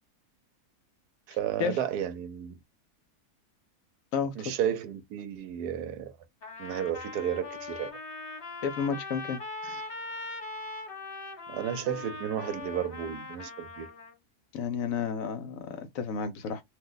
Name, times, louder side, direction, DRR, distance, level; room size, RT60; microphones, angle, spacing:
voice 1, 1.3-2.6 4.4-6.1 6.6-7.9 9.6-9.8 11.5-13.9, right 9 dB, 80° right, 1.1 m, -32 dB
voice 2, 4.1-4.5 8.6-9.4 14.5-16.6, left 6 dB, 70° left, 0.9 m, -31 dB
Trumpet, 6.4-14.1, left 3 dB, 40° left, 1.0 m, -41 dB
2.6 x 2.1 x 3.8 m
omnidirectional pair, 1.7 m